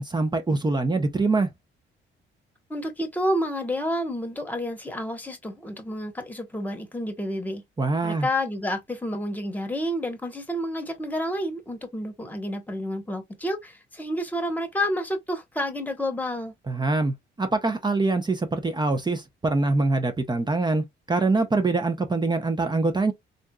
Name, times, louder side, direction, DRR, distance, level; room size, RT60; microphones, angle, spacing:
voice 1, 0.0-1.5 7.8-8.3 16.7-23.1, right 3 dB, 20° right, 0.7 m, -24 dB
voice 2, 2.7-7.6 8.0-16.5, equal, 10° left, 1.1 m, -29 dB
3.6 x 2.6 x 2.2 m
cardioid pair, 90°, 20 cm